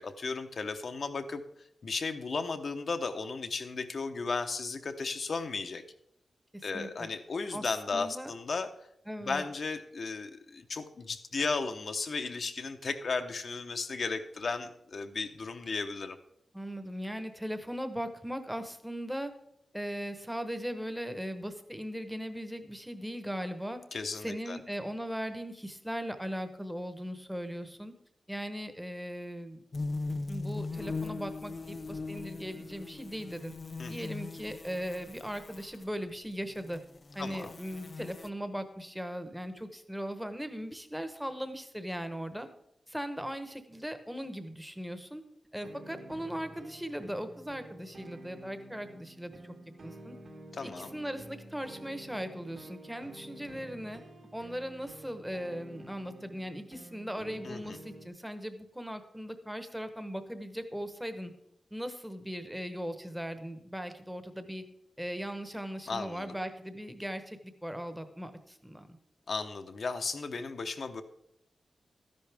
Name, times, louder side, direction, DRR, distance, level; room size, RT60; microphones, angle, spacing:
voice 1, 0.0-1.4 1.8-5.8 6.6-8.7 9.2-16.2 23.9-24.6 33.8-33.9 37.2-37.5 50.5-50.9 57.4-57.6 65.9-66.3 69.3-71.0, left 4 dB, 50° left, 7 dB, 0.8 m, -35 dB
voice 2, 6.5-7.1 7.5-8.3 9.1-9.4 16.5-19.3 19.7-23.8 24.2-27.9 28.3-29.6 30.3-33.5 33.9-36.8 37.1-42.5 42.9-45.2 45.5-49.4 49.8-50.1 50.6-54.0 54.3-61.3 61.7-64.6 65.0-69.0, equal, 5° right, 9 dB, 1.0 m, -38 dB
sound 1, 29.7-35.8 36.4-38.3, left 3 dB, 35° left, 0.4 m, -39 dB
sound 2, 45.6-58.1, right 1 dB, 65° right, 2.1 m, -50 dB
13.0 x 10.5 x 3.5 m, 0.77 s
wide cardioid pair, 155°, 0 cm